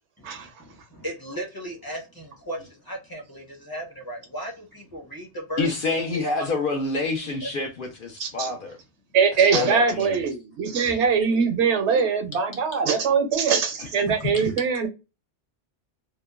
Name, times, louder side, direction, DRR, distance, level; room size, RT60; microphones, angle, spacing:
voice 1, 0.3-6.5 7.4-7.5 9.5-9.7 10.8-11.0, right 1 dB, 20° left, 0.7 m, -36 dB
voice 2, 5.6-8.8 9.5-10.2 13.8-13.9 14.3-14.5, left 3 dB, 55° left, 0.7 m, -27 dB
voice 3, 8.2-8.5 9.1-14.9, right 6 dB, 70° right, 0.9 m, -22 dB
2.8 x 2.2 x 2.2 m
omnidirectional pair, 1.2 m